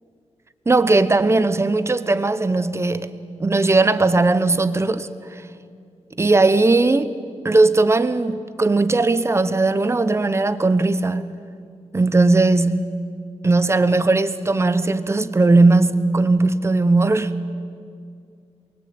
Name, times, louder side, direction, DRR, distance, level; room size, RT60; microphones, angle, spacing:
voice 1, 0.7-3.1 3.4-5.4 6.2-7.1 7.4-11.3 11.9-13.0 13.4-17.3, right 3 dB, 25° right, 0.9 m, -18 dB
28.0 x 23.0 x 8.7 m
wide cardioid pair, 165°, 12 cm